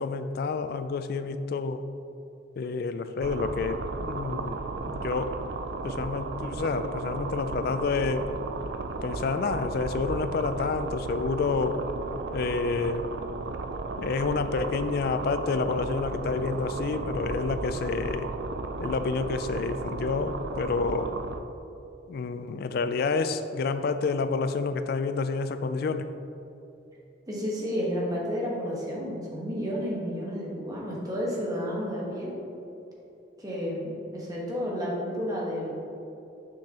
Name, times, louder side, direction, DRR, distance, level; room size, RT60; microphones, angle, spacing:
voice 1, 0.0-1.8 2.6-4.6 4.9-5.4 5.8-8.3 9.0-11.8 12.3-13.1 14.0-18.3 18.8-21.1 22.1-26.1, left 4 dB, 55° left, 10 dB, 0.3 m, -29 dB
sound 1, 3.2-21.4, right 3 dB, 65° right, 0.4 m, -35 dB
voice 2, 27.3-32.3 33.4-35.7, equal, 20° right, -4 dB, 1.2 m, -31 dB
6.7 x 6.1 x 2.9 m, 2.8 s
head